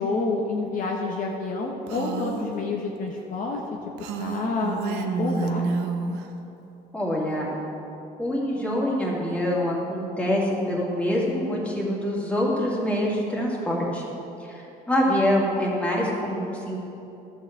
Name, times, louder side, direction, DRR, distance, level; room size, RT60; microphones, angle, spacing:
voice 1, 0.0-3.6 4.2-5.9, left 3 dB, 50° left, -1 dB, 1.1 m, -28 dB
Female speech woman speaking, 1.9-2.5 4.0-6.3, right 4 dB, 90° right, 0.8 m, -29 dB
voice 2, 6.9-7.5 8.2-14.0 14.5-16.8, equal, 10° left, -4 dB, 2.4 m, -25 dB
12.0 x 4.8 x 7.5 m, 2.9 s
cardioid pair, 110°, 17 cm